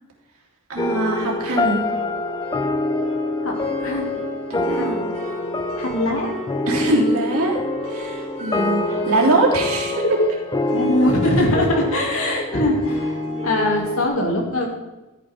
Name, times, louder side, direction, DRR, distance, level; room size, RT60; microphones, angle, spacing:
voice 1, 0.7-1.8 4.5-5.0 6.7-7.6 7.9-10.4, right 2 dB, 85° right, -2 dB, 3.1 m, -22 dB
sound 1, 0.8-14.1, left 2 dB, 20° left, 0.4 m, -25 dB
sound 2, 1.4-13.8, right 1 dB, 35° right, 3.6 m, -38 dB
voice 2, 3.8-4.2 4.7-5.1 5.8-6.3 10.7-14.7, left 1 dB, 70° left, 0 dB, 2.8 m, -22 dB
13.5 x 9.3 x 3.7 m, 1.1 s
head